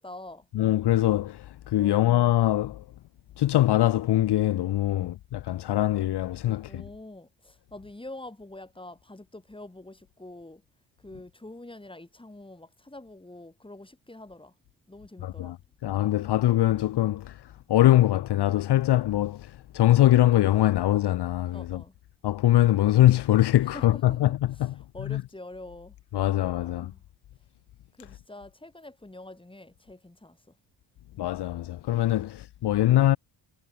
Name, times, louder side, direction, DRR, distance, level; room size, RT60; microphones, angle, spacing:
voice 1, 0.0-0.5 1.8-2.0 4.9-5.1 6.4-10.6 11.0-14.5 14.9-15.5 21.5-21.9 23.7-24.2 24.9-26.0 26.6-27.0 28.0-30.4, left 2 dB, 10° left, 7.2 m, -45 dB
voice 2, 0.5-2.8 3.4-6.8 15.2-15.6 15.8-21.8 22.2-25.2 26.1-26.9 31.2-33.2, left 14 dB, 60° left, 0.8 m, -23 dB
cardioid pair, 95°, 46 cm